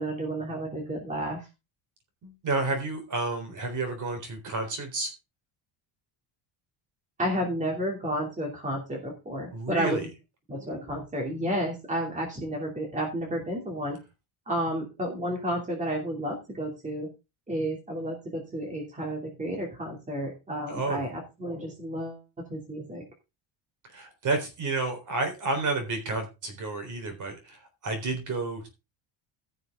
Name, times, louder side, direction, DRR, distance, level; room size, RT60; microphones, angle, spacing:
voice 1, 0.0-1.5 7.2-10.1 10.5-14.0 14.5-17.1 17.5-22.2 22.5-23.0, equal, 15° right, 0 dB, 2.9 m, -31 dB
voice 2, 2.2-5.1 9.5-10.0 20.7-21.0 23.9-28.7, right 3 dB, 40° right, 7 dB, 3.9 m, -30 dB
15.5 x 6.8 x 3.7 m, 0.27 s
cardioid pair, 170°, 47 cm